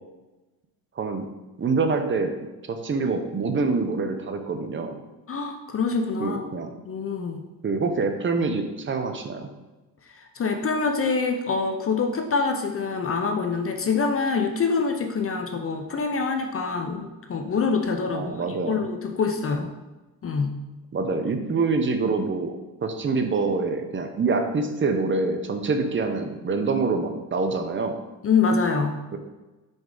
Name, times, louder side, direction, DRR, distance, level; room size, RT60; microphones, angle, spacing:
voice 1, 1.6-2.3 2.7-4.9 6.2-6.7 7.6-9.5 18.1-18.8 20.9-28.0 29.1-29.2, right 4 dB, 30° right, 6 dB, 0.7 m, -25 dB
voice 2, 5.3-6.4 6.8-7.4 10.1-18.3 18.7-19.7 20.2-20.6 28.2-29.1, left 4 dB, 35° left, 5 dB, 0.6 m, -25 dB
5.2 x 4.7 x 3.9 m, 1.1 s
cardioid pair, 100°, 39 cm